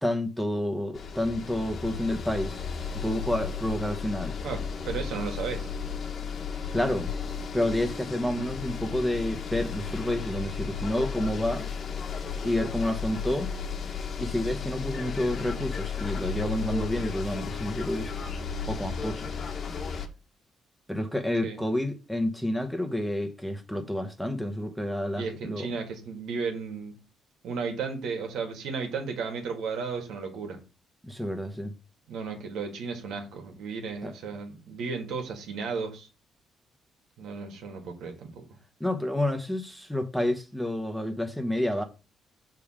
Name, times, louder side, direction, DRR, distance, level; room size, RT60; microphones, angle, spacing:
voice 1, 0.0-2.6 2.9-4.4 6.7-7.1 7.5-11.6 12.4-13.5 14.2-18.1 18.7-19.3 20.9-25.7 31.0-31.7 34.0-34.1 38.8-41.8, left 1 dB, ahead, 1.1 m, -29 dB
sound 1, 0.9-20.1, left 6 dB, 50° left, 1.1 m, -34 dB
voice 2, 4.4-5.7 21.4-21.6 25.2-26.9 27.4-30.6 32.1-36.1 37.2-38.4, right 5 dB, 80° right, 1.9 m, -34 dB
6.9 x 3.5 x 5.0 m
cardioid pair, 90°, 0 cm